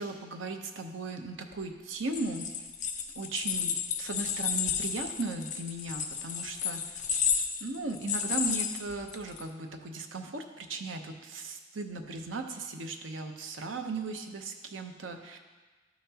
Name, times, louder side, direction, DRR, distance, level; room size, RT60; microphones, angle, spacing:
voice 1, 0.0-2.5 3.2-7.0 7.6-15.4, right 3 dB, 80° right, 5 dB, 0.8 m, -37 dB
sound 1, 2.0-9.4, left 7 dB, 40° left, 0.6 m, -32 dB
12.5 x 5.8 x 2.8 m, 1.3 s
head